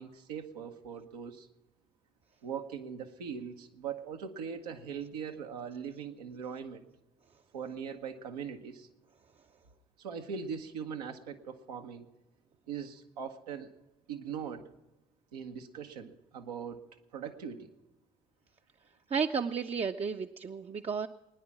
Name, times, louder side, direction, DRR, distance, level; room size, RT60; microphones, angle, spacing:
voice 1, 0.0-1.5 2.4-6.9 7.5-8.9 10.0-12.1 12.7-13.7 14.1-14.6 15.3-16.8 17.1-17.7, right 7 dB, 85° right, 4 dB, 1.1 m, -41 dB
voice 2, 19.1-21.1, right 6 dB, 30° right, 5 dB, 0.6 m, -32 dB
21.5 x 10.0 x 6.0 m, 1.1 s
hypercardioid pair, 50°, 19 cm